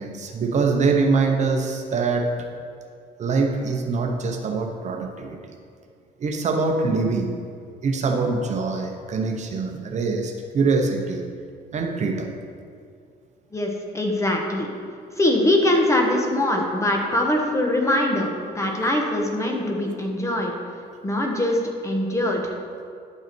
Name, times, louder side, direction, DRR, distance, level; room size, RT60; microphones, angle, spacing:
voice 1, 0.0-2.3 3.2-5.6 6.2-7.4 7.8-11.3 11.7-12.3, right 4 dB, 45° right, 3 dB, 0.8 m, -24 dB
voice 2, 13.5-14.7 15.2-20.5 21.0-21.6 21.8-22.5, left 1 dB, 15° left, 1 dB, 1.2 m, -22 dB
10.5 x 5.5 x 4.5 m, 2.3 s
cardioid pair, 110°, 17 cm